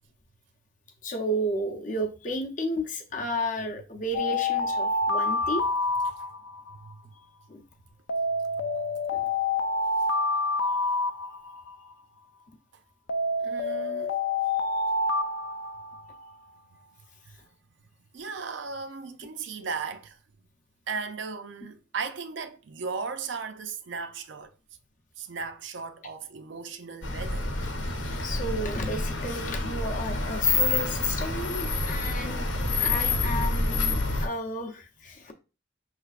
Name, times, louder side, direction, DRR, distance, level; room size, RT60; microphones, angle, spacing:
voice 1, 1.0-5.7 7.5-7.6 9.1-9.3 14.5-14.8 28.2-32.5 32.8-35.3, equal, 40° left, 0.6 m, -33 dB
Alarm, 4.1-6.7 8.1-11.7 13.1-16.3, left 2 dB, 90° left, 0.5 m, -28 dB
voice 2, 8.5-8.9 13.4-14.2 18.1-20.2 20.9-24.5 25.2-27.5, right 5 dB, 65° right, 0.5 m, -36 dB
sound 1, 27.0-34.3, left 3 dB, 75° left, 0.8 m, -28 dB
5.5 x 3.3 x 2.4 m
head